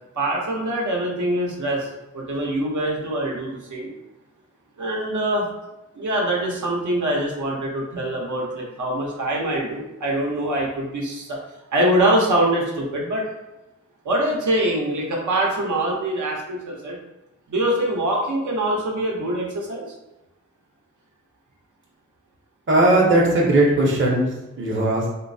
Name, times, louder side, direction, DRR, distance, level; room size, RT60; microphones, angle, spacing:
voice 1, 0.2-1.9 2.1-3.9 4.8-5.5 6.0-11.4 11.7-13.3 14.0-17.0 17.5-19.8, right 1 dB, 85° right, -2 dB, 0.7 m, -24 dB
voice 2, 22.7-24.3 24.6-25.0, right 1 dB, 40° right, -3 dB, 0.7 m, -18 dB
3.7 x 2.0 x 2.6 m, 0.97 s
wide cardioid pair, 125°, 29 cm